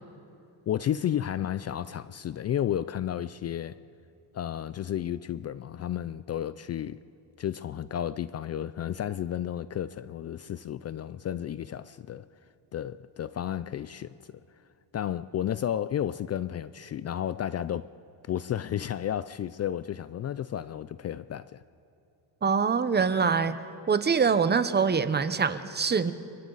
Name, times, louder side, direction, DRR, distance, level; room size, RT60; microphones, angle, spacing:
voice 1, 0.7-3.8 4.3-7.0 7.4-12.3 12.7-14.4 14.9-17.9 18.3-21.6, left 10 dB, 40° left, 0.4 m, -32 dB
voice 2, 22.4-23.6 23.9-26.1, right 5 dB, 20° right, 0.9 m, -24 dB
29.5 x 23.5 x 4.0 m
cardioid pair, 120°, 44 cm